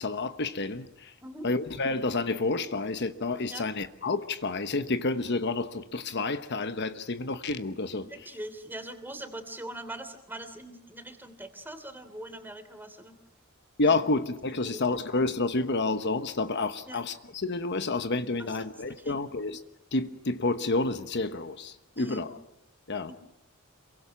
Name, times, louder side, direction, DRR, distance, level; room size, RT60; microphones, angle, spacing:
voice 1, 0.0-1.1 1.4-8.0 13.8-19.6 19.9-22.3 22.9-23.1, left 3 dB, 55° left, 1.1 m, -29 dB
voice 2, 8.1-13.2 13.8-13.9 14.5-14.8 16.9-17.0 18.4-19.2 22.0-22.3 23.1-23.2, right 1 dB, 10° right, 3.1 m, -42 dB
28.0 x 23.5 x 6.0 m
head